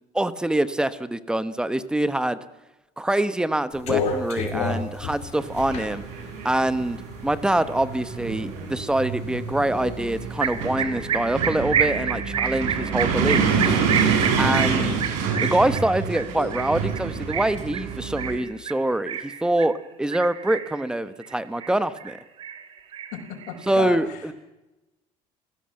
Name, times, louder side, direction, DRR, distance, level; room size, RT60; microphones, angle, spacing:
voice 1, 0.1-2.4 3.0-6.0 6.4-7.0 7.2-13.8 14.4-15.0 15.4-22.2 23.7-24.3, right 1 dB, 5° right, 14 dB, 0.9 m, -25 dB
sound 1, 3.7-7.7 8.2-9.1 9.5-10.5, left 5 dB, 55° left, 5.1 m, -30 dB
sound 2, 5.3-18.4, right 5 dB, 80° right, 5.9 m, -27 dB
sound 3, 10.4-19.7 20.1-20.8 21.2-22.1 22.4-23.7, right 8 dB, 40° right, 2.3 m, -29 dB
voice 2, 23.1-24.2, left 10 dB, 75° left, 1 dB, 5.8 m, -33 dB
29.5 x 16.5 x 7.7 m, 1.0 s
cardioid pair, 150°, 13 cm